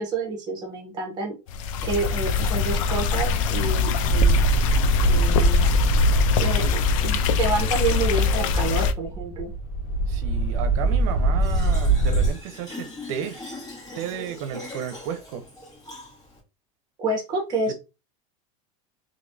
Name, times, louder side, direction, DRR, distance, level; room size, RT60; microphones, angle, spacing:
voice 1, 0.0-1.4 1.8-4.4 5.0-5.6 6.4-9.5 17.0-17.7, right 3 dB, 25° right, 1.2 m, -28 dB
sound 1, 1.5-8.9, left 5 dB, 80° left, 0.5 m, -23 dB
sound 2, 4.0-12.3, right 2 dB, 50° left, 1.5 m, -23 dB
voice 2, 10.1-13.4 13.9-15.5 17.7-17.8, right 8 dB, 70° right, 0.8 m, -33 dB
Fill (with liquid), 11.4-16.4, left 2 dB, 20° left, 1.7 m, -41 dB
3.0 x 2.8 x 2.7 m
supercardioid pair, 140°, 17 cm